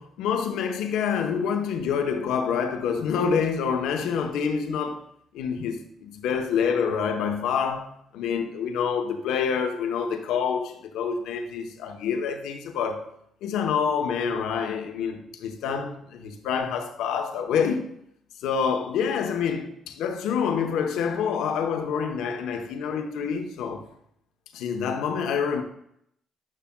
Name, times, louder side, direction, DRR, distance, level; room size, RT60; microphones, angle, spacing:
voice 1, 0.0-5.0 5.3-13.1 13.4-17.9 18.4-23.9 24.5-25.6, left 6 dB, 85° left, 0.8 m, -27 dB
11.0 x 5.7 x 2.2 m
supercardioid pair, 70°, 0 cm